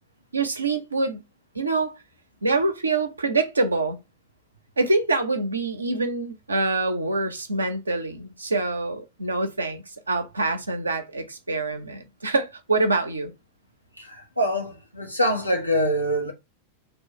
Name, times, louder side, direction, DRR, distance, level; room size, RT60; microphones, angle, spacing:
voice 1, 0.3-1.2 1.5-2.0 2.4-4.0 4.8-13.3, right 3 dB, 80° right, 0.8 m, -25 dB
voice 2, 14.0-16.3, equal, 90° left, 1.0 m, -25 dB
3.3 x 3.1 x 4.5 m
figure-of-eight pair, 90°, 0 cm